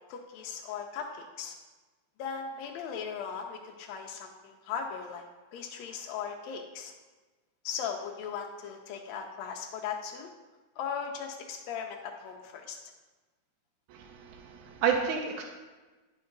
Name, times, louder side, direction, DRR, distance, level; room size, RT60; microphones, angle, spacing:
voice 1, 0.1-1.5 2.2-6.9 7.6-10.3 10.8-12.8, left 7 dB, 75° left, 2 dB, 1.8 m, -38 dB
voice 2, 13.9-15.4, right 7 dB, 85° right, 1 dB, 2.1 m, -30 dB
10.5 x 5.2 x 3.9 m, 1.3 s
omnidirectional pair, 3.4 m